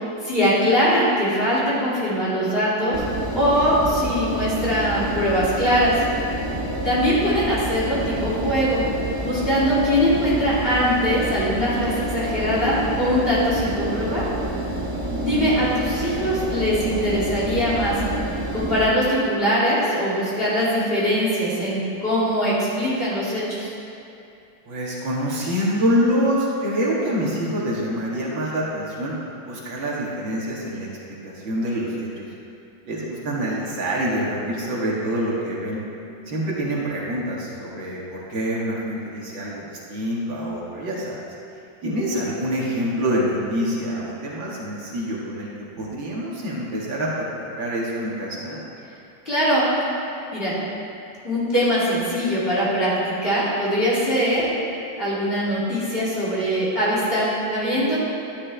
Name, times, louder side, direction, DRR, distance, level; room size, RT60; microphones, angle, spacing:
voice 1, 0.2-3.0 3.3-5.9 6.8-8.8 9.2-14.2 15.2-17.9 18.5-23.7 49.2-49.7 50.3-50.6 51.2-54.5 55.0-58.0, equal, 30° left, -9 dB, 2.9 m, -22 dB
Engine, 2.9-18.8, right 1 dB, 20° right, 0.6 m, -28 dB
voice 2, 15.0-15.7 24.7-29.1 29.5-30.9 31.2-32.3 32.9-35.8 36.3-41.1 41.8-45.5 45.8-47.3 47.6-48.6, equal, 70° right, -5 dB, 2.4 m, -26 dB
12.0 x 11.0 x 3.4 m, 2.6 s
omnidirectional pair, 2.1 m